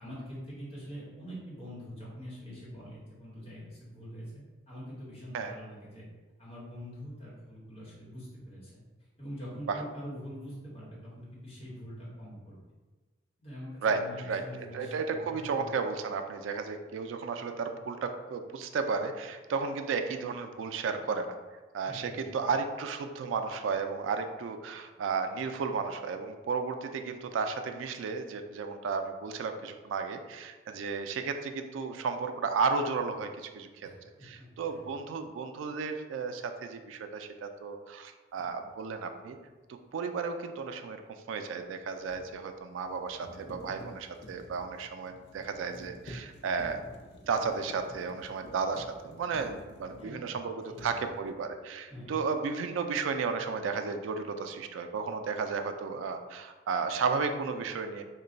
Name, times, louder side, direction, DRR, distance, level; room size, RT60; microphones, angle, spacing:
voice 1, 0.0-6.0 6.4-8.8 9.2-12.6 13.4-15.7 21.8-22.3 33.8-34.1 34.4-34.8 50.0-50.4 50.8-51.0 51.9-52.2, equal, 30° left, -7 dB, 1.2 m, -44 dB
voice 2, 13.8-14.4 14.7-21.4 21.7-33.9 34.2-39.4 39.7-46.8 47.3-58.0, right 5 dB, 80° right, 7 dB, 0.3 m, -33 dB
sound 1, 38.4-38.5 41.6-50.4 50.7-51.5, equal, 55° left, 0.5 m, -50 dB
3.1 x 2.2 x 3.9 m, 1.3 s
head